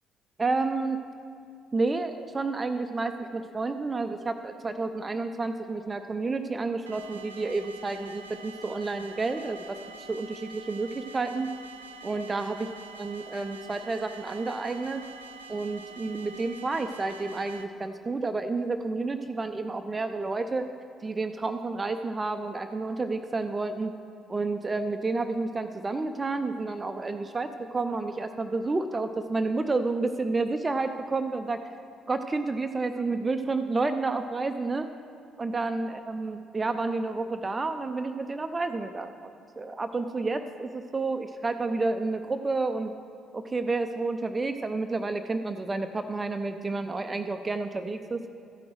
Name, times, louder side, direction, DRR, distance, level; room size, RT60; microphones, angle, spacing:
voice 1, 0.4-1.0 1.7-11.5 12.0-12.7 13.0-15.0 15.5-20.6 21.0-23.9 24.3-31.6 32.1-34.9 35.4-39.1 39.6-42.9 43.3-48.2, right 3 dB, 25° right, 8 dB, 0.5 m, -30 dB
sound 1, 6.9-17.6, right 3 dB, 80° right, 0.4 m, -46 dB
14.0 x 6.1 x 6.2 m, 2.5 s
figure-of-eight pair, 45°, 0 cm